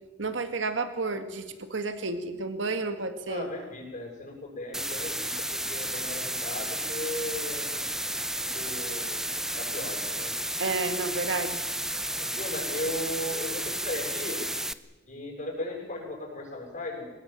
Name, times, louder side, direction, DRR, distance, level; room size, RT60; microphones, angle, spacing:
voice 1, 0.2-3.5 10.6-11.6, right 3 dB, 75° right, 9 dB, 1.9 m, -31 dB
voice 2, 3.3-7.7 8.5-9.3 9.5-10.3 12.2-14.4 15.1-17.1, left 1 dB, 45° left, -1 dB, 7.5 m, -37 dB
sound 1, 4.7-14.7, right 1 dB, 5° right, 0.8 m, -32 dB
25.0 x 21.0 x 7.6 m, 1.1 s
head